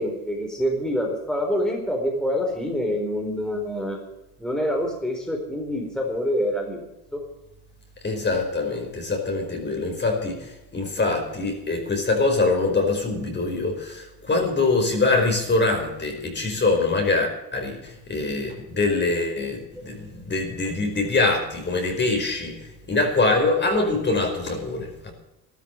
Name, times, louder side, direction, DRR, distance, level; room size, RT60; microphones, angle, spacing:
voice 1, 0.0-4.0 4.4-6.8 7.1-7.2, equal, ahead, 0 dB, 4.3 m, -26 dB
voice 2, 8.0-25.1, left 3 dB, 30° left, 3 dB, 5.0 m, -24 dB
13.5 x 12.5 x 6.8 m, 0.91 s
cardioid pair, 100°, 38 cm